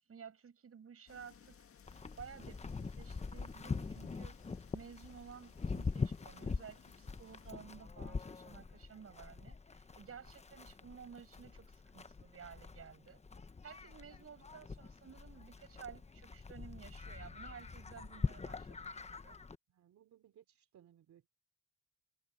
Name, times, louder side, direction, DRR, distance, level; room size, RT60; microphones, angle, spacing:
voice 1, 0.0-1.6 2.2-4.4 4.7-13.2 13.6-19.4, right 7 dB, 50° right, 7.4 m, -54 dB
sound 1, 1.1-7.5, left 7 dB, 45° left, 1.8 m, -61 dB
Livestock farm animals working animals, 1.9-19.6, left 4 dB, 20° left, 1.0 m, -43 dB
voice 2, 19.7-21.3, right 10 dB, 70° right, 3.4 m, -64 dB
cardioid pair, 90°, 30 cm